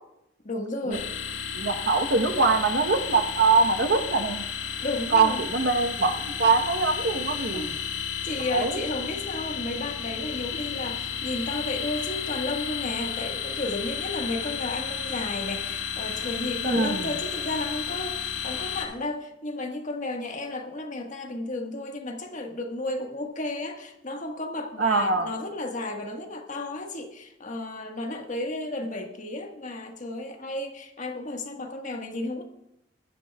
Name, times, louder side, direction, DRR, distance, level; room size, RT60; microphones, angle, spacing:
voice 1, 0.4-1.1 4.8-5.4 7.5-32.4, left 2 dB, 45° left, 3 dB, 1.5 m, -33 dB
sound 1, 0.9-18.9, left 7 dB, 85° left, 2.0 m, -33 dB
voice 2, 1.5-4.4 5.1-7.7 8.5-8.8 16.6-17.1 24.8-25.3, right 4 dB, 65° right, 8 dB, 1.1 m, -23 dB
21.0 x 11.5 x 2.3 m, 0.87 s
head